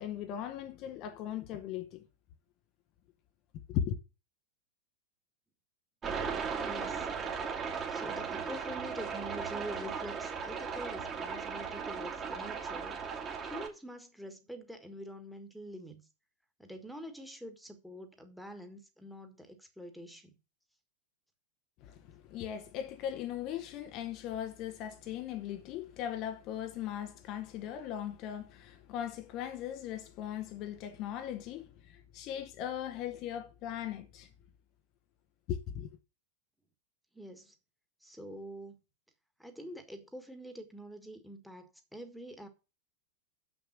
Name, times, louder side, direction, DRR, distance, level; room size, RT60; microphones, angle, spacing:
voice 1, 0.0-2.0 3.7-4.0 21.8-34.3 35.5-35.9, left 10 dB, 40° left, 0.8 m, -38 dB
sound 1, 6.0-13.7, right 6 dB, 25° right, 2.0 m, -37 dB
voice 2, 6.6-7.1 7.9-13.0 13.4-16.0 16.6-20.3 37.1-37.5 38.0-38.8 39.4-42.5, equal, ahead, 1.6 m, -45 dB
7.3 x 6.2 x 6.1 m
figure-of-eight pair, 90°, 0 cm